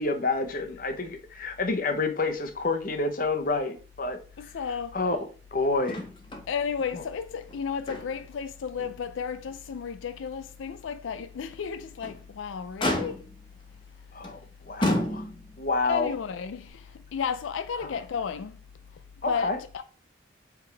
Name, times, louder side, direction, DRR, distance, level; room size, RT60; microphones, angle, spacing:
voice 1, 0.0-4.2 4.9-5.2 5.5-6.0 6.9-7.0 14.1-14.4 14.7-15.2 15.6-16.1 19.2-19.6, left 3 dB, 45° left, 0.9 m, -28 dB
voice 2, 4.4-5.0 6.5-13.3 15.8-18.6 18.9-19.8, left 6 dB, 85° left, 0.4 m, -33 dB
Motor vehicle (road), 5.8-6.5 6.8-6.9 7.4-8.4 8.8-8.9 9.5-9.6 11.8-12.2 12.8-13.5 14.2-14.4 14.8-15.6 16.7-16.8, left 1 dB, 25° left, 1.2 m, -30 dB
8.1 x 3.5 x 3.4 m
head